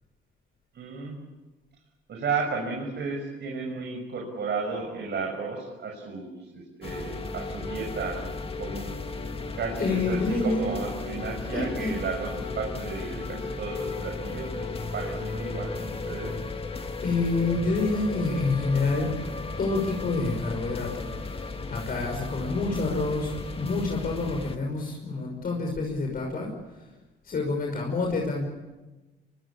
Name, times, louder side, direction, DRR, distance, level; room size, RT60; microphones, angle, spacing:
voice 1, 0.7-1.2 2.1-8.2 8.6-8.9 9.6-16.4, right 4 dB, 60° right, 1 dB, 6.5 m, -33 dB
sound 1, 6.8-24.6, left 3 dB, 30° left, 2.2 m, -35 dB
voice 2, 9.8-10.6 11.5-11.9 17.0-19.1 19.6-26.8 27.2-28.5, left 3 dB, 50° left, 1 dB, 5.7 m, -28 dB
25.0 x 24.5 x 8.8 m, 1.1 s
cardioid pair, 90°, 20 cm